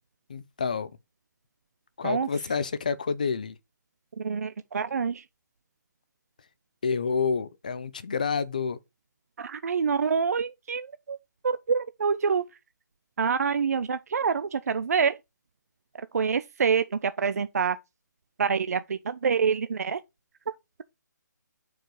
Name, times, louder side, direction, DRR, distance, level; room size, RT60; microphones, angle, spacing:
voice 1, 0.3-0.9 2.0-3.6 6.8-8.8, left 5 dB, 25° left, 0.3 m, -28 dB
voice 2, 4.2-5.2 9.4-11.2 11.4-12.4 13.2-15.1 16.1-17.8 18.4-20.0, right 6 dB, 55° right, 0.4 m, -26 dB
5.1 x 4.7 x 4.5 m
hypercardioid pair, 175°, 10 cm